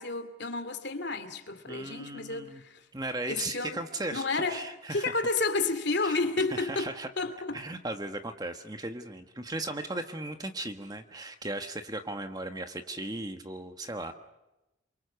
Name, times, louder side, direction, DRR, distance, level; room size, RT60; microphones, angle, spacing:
voice 1, 0.0-2.8 3.3-3.8 4.1-4.6 4.9-6.9 7.2-7.6, left 3 dB, 60° left, 2.5 m, -31 dB
voice 2, 1.7-2.6 2.9-5.1 6.0-6.2 6.5-7.1 7.5-14.1, right 2 dB, 20° right, 1.3 m, -37 dB
27.5 x 24.0 x 6.9 m
head